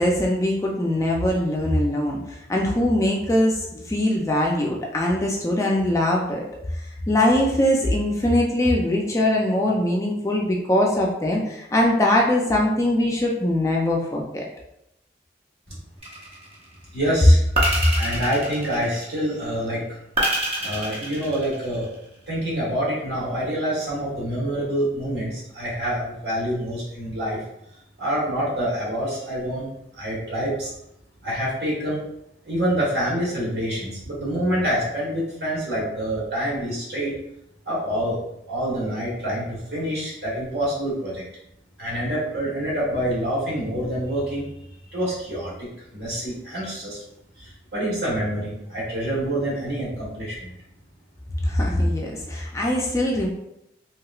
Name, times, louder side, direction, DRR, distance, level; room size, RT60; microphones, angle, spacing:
voice 1, 0.0-6.4 6.7-14.5 51.4-53.3, left 1 dB, 15° left, -1 dB, 0.3 m, -22 dB
sound 1, 16.0-16.6 17.6-19.2 20.2-21.9, right 1 dB, 35° right, 0.6 m, -26 dB
voice 2, 16.9-17.4 18.0-20.0 20.6-21.9 22.3-27.4 28.0-29.7 30.0-30.7 31.2-32.0 32.4-37.1 37.6-38.2 38.5-41.2 41.8-44.5 44.9-47.0 47.4-50.5, equal, 65° right, -6 dB, 1.3 m, -26 dB
3.0 x 2.8 x 2.3 m, 0.82 s
head